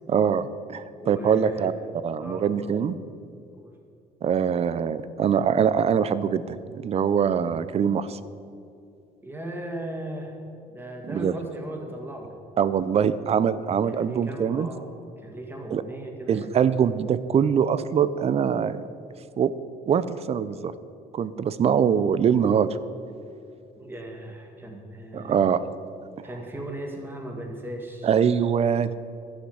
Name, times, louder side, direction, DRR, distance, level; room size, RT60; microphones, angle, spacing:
voice 1, 0.1-1.7 2.0-3.0 4.2-8.2 11.0-11.3 12.6-14.7 15.7-15.8 16.3-18.8 19.4-19.5 19.9-20.7 21.1-22.8 25.1-25.6 28.0-28.9, right 7 dB, 40° right, 15 dB, 0.5 m, -23 dB
voice 2, 1.0-1.9 2.2-2.7 3.5-3.7 9.2-10.4 10.7-12.4 13.9-14.9 15.2-16.8 23.8-25.3 26.2-28.1, right 1 dB, 10° right, 1 dB, 2.0 m, -37 dB
11.5 x 6.2 x 7.8 m, 2.5 s
cardioid pair, 110°, 17 cm